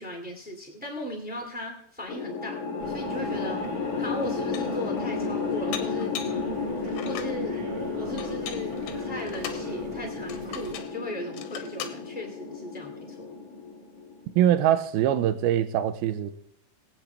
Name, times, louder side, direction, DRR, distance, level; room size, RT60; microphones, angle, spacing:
voice 1, 0.0-3.6 4.0-6.2 7.0-7.6 7.9-13.3, left 1 dB, 10° right, 0.6 m, -37 dB
sound 1, 2.1-14.4, left 4 dB, 65° left, 2.0 m, -33 dB
sound 2, 2.8-10.7, right 4 dB, 50° right, 2.5 m, -41 dB
Dishes pots and pans, 3.6-3.7 4.2-4.8 5.7-6.4 6.9-7.4 8.2-9.7 10.3-11.0 11.3-12.0, left 9 dB, 80° left, 3.0 m, -39 dB
voice 2, 14.4-16.3, right 11 dB, 85° right, 2.2 m, -23 dB
22.5 x 8.5 x 3.4 m
omnidirectional pair, 5.0 m